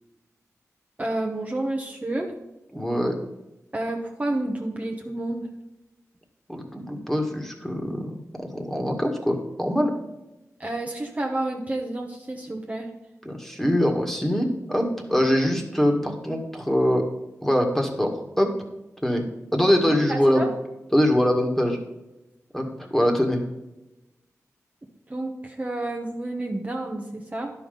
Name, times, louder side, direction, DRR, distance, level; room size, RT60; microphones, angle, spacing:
voice 1, 1.0-2.3 3.7-5.5 10.6-12.9 19.8-20.5 25.1-27.5, right 2 dB, 25° right, 1 dB, 1.2 m, -30 dB
voice 2, 2.7-3.1 6.5-9.9 13.2-17.0 17.4-18.5 19.0-19.3 19.5-20.4 20.9-21.8 22.5-23.4, equal, 5° left, 2 dB, 1.9 m, -23 dB
11.0 x 5.8 x 5.3 m, 0.97 s
wide cardioid pair, 80°, 6 cm